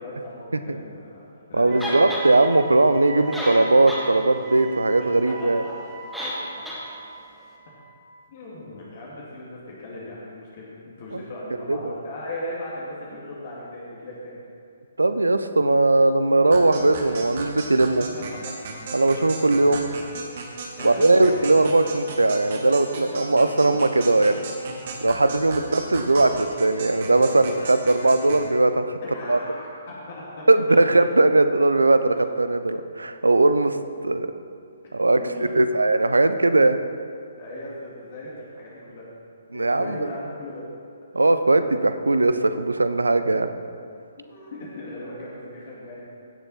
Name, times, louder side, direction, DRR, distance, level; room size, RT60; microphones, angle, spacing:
voice 1, 0.0-2.1 5.0-5.8 8.3-14.4 18.1-18.5 20.8-21.5 29.0-30.8 35.1-35.5 37.4-39.1 39.5-41.0 44.3-46.1, left 1 dB, 45° left, -6 dB, 2.3 m, -38 dB
voice 2, 1.5-5.6 11.1-11.2 11.7-12.0 15.0-18.0 18.9-19.9 20.8-24.4 25.0-29.0 29.3-29.4 30.5-33.8 34.0-34.3 34.9-35.2 35.6-36.8 39.5-40.0 41.1-43.5, right 2 dB, 75° right, 10 dB, 0.6 m, -19 dB
Wind instrument woodwind instrument, 1.7-8.1, right 4 dB, 25° right, 0.9 m, -40 dB
sound 1, 1.8-2.3 3.0-3.1 3.3-4.1 4.4-4.5 6.1-6.4 6.6-6.8, equal, ahead, 1.8 m, -30 dB
sound 2, 16.5-28.5, right 3 dB, 45° right, 1.5 m, -36 dB
16.0 x 6.8 x 4.2 m, 2.3 s
figure-of-eight pair, 130°, 0 cm